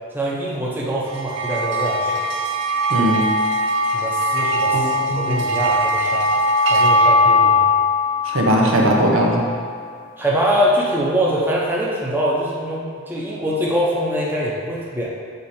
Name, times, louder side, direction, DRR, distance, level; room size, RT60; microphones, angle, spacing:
voice 1, 0.1-2.2 3.9-6.3 6.7-7.7 10.2-15.1, equal, 10° right, -5 dB, 0.9 m, -23 dB
sound 1, 1.1-9.7, left 1 dB, 60° right, 0.5 m, -20 dB
voice 2, 2.9-3.3 4.7-5.4 8.2-9.4, right 1 dB, 80° right, -1 dB, 1.0 m, -19 dB
6.8 x 4.9 x 4.4 m, 2.1 s
head